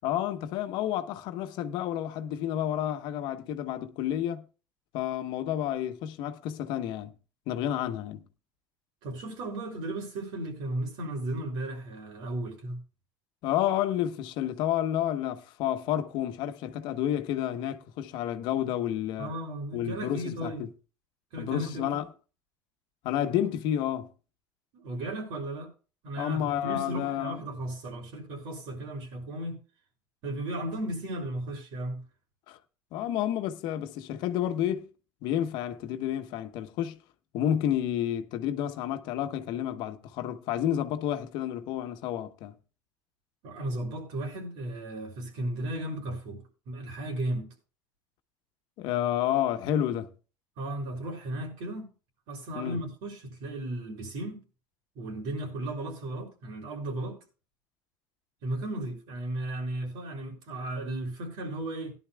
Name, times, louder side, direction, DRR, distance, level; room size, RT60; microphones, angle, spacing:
voice 1, 0.0-4.4 4.9-7.1 7.5-8.2 13.4-19.3 19.7-20.7 21.4-22.1 23.0-24.1 26.2-27.4 32.5-32.6 32.9-34.9 35.2-37.0 37.3-42.6 48.8-50.1 52.5-52.8, left 11 dB, 70° left, 1.0 m, -30 dB
voice 2, 9.0-12.8 19.2-20.6 21.3-21.9 24.7-25.7 26.0-29.6 30.2-32.0 43.4-46.4 46.7-47.5 50.6-51.9 52.3-54.4 54.9-57.2 58.4-61.9, right 1 dB, 75° right, 6.2 m, -35 dB
18.0 x 11.0 x 2.3 m
cardioid pair, 115°, 8 cm